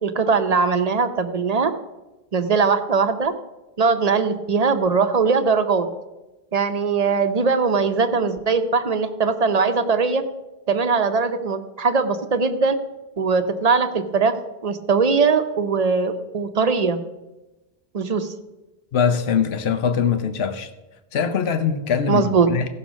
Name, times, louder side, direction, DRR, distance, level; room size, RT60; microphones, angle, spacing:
voice 1, 0.0-1.7 2.3-3.3 3.8-5.9 6.5-10.2 10.7-12.8 13.2-14.3 14.6-17.0 17.9-18.3 22.1-22.5, right 5 dB, 40° right, 0.8 m, -20 dB
voice 2, 18.9-20.7 21.1-22.7, left 7 dB, 75° left, 1.0 m, -22 dB
15.5 x 5.8 x 6.2 m
omnidirectional pair, 1.1 m